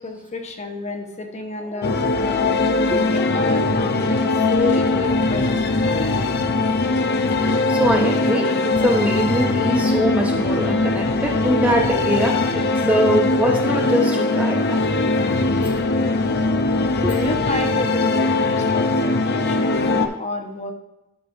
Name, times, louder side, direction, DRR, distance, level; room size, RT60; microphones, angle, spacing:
voice 1, 0.0-5.6 17.1-20.7, left 2 dB, 35° left, 4 dB, 1.0 m, -30 dB
sound 1, 1.6-20.2, left 3 dB, 10° left, 1.1 m, -42 dB
sound 2, 1.8-20.1, left 3 dB, 50° left, 0.5 m, -20 dB
sound 3, 3.6-9.1, left 2 dB, 70° left, 0.8 m, -40 dB
voice 2, 7.3-14.8 15.4-15.7 17.0-17.1, right 1 dB, 5° right, 1 dB, 0.6 m, -23 dB
12.0 x 5.3 x 2.6 m, 0.95 s
head